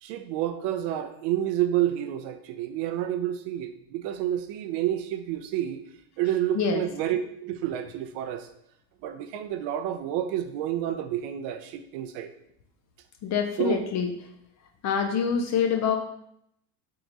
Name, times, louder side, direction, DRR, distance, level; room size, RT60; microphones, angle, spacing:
voice 1, 0.0-5.8 6.2-8.5 9.0-12.3 13.6-13.8, right 11 dB, 60° right, 9 dB, 0.5 m, -29 dB
voice 2, 13.2-14.1 14.8-16.0, left 6 dB, 35° left, 5 dB, 0.4 m, -25 dB
3.7 x 2.9 x 3.8 m, 0.74 s
supercardioid pair, 105°, 50 cm